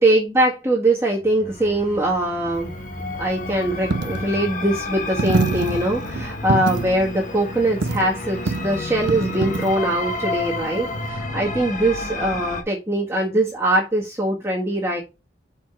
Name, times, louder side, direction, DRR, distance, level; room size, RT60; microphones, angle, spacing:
voice 1, 0.0-2.7 3.2-15.0, right 1 dB, 15° right, -6 dB, 1.7 m, -22 dB
sound 1, 1.2-12.6, left 3 dB, 45° left, 1.3 m, -31 dB
Coin (dropping), 2.5-11.1, right 4 dB, 80° right, 0.5 m, -28 dB
5.9 x 4.2 x 5.6 m, 0.26 s
head